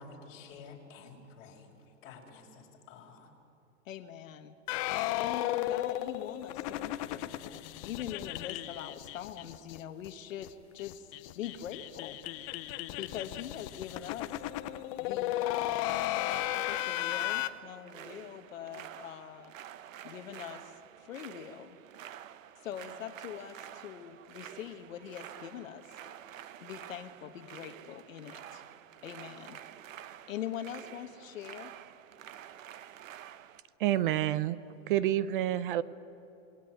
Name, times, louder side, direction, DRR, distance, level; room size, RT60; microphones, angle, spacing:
voice 1, 0.0-1.7 2.0-3.3, left 4 dB, 45° left, 0 dB, 5.4 m, -50 dB
voice 2, 3.8-4.5 5.2-12.2 13.0-14.5 15.0-16.0 16.5-19.5 20.0-21.8 22.6-26.0 26.6-28.6 29.0-29.6 29.9-31.7, left 10 dB, 80° left, 7 dB, 1.4 m, -43 dB
sound 1, 4.7-9.8 10.0-10.1 10.4-10.5 10.8-17.5, left 14 dB, 25° left, 0.6 m, -35 dB
sound 2, 15.9-33.6, right 10 dB, 80° right, 1.2 m, -49 dB
voice 3, 33.8-34.6 34.9-35.8, right 13 dB, 40° right, 17 dB, 0.6 m, -28 dB
27.5 x 20.5 x 9.4 m, 2.8 s
supercardioid pair, 165°, 39 cm